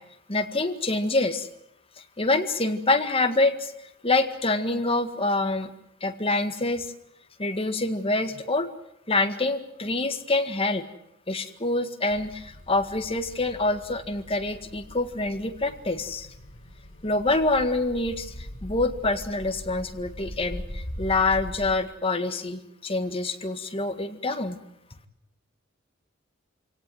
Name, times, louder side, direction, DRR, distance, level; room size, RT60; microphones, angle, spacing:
voice 1, 0.3-1.5 2.2-5.7 6.0-6.9 7.4-8.7 9.1-10.9 11.3-16.3 17.0-24.6, left 2 dB, 25° left, 7 dB, 1.8 m, -26 dB
sound 1, 12.1-21.8, equal, 70° left, 5.5 m, -41 dB
26.0 x 17.5 x 9.5 m, 0.80 s
head